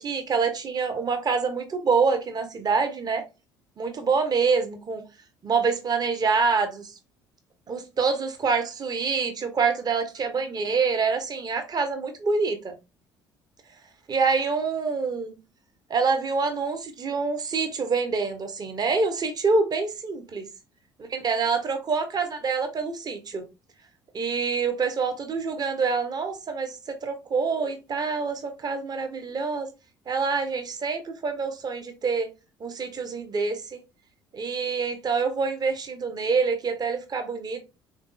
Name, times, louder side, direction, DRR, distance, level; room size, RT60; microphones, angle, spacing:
voice 1, 0.0-3.2 3.8-5.0 5.4-6.9 7.7-12.7 14.1-15.3 15.9-20.5 21.1-23.4 24.1-29.7 30.1-32.3 32.6-33.8 34.3-37.6, right 4 dB, 35° right, 0.8 m, -26 dB
3.5 x 2.6 x 2.3 m
figure-of-eight pair, 50°, 12 cm